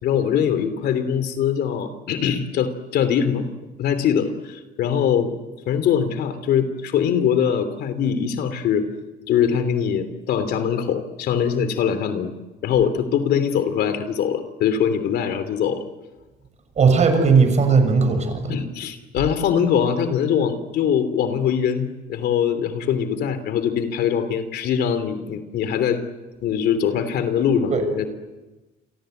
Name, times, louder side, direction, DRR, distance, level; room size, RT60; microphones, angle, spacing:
voice 1, 0.0-3.5 3.8-5.3 5.7-8.9 9.3-12.3 12.6-15.8 18.5-26.0 26.4-28.1, left 8 dB, 70° left, 11 dB, 3.1 m, -22 dB
voice 2, 16.8-18.6 27.7-27.8, right 5 dB, 45° right, 7 dB, 6.7 m, -17 dB
29.0 x 24.0 x 8.0 m, 1.1 s
cardioid pair, 110°, 17 cm